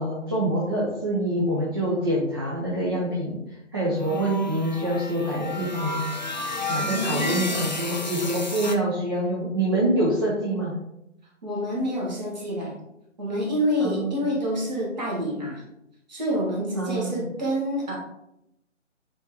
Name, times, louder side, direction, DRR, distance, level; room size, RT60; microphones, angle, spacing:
voice 1, 0.0-6.1 6.7-10.7 13.8-14.1 16.7-17.2, right 1 dB, 20° right, -7 dB, 0.7 m, -26 dB
sound 1, 4.0-8.8, left 2 dB, 40° left, 0.4 m, -32 dB
voice 2, 6.7-7.7 11.4-12.8 13.2-15.6 16.1-18.0, equal, 35° right, -2 dB, 1.7 m, -28 dB
8.9 x 3.7 x 3.0 m, 0.84 s
figure-of-eight pair, 145°, 37 cm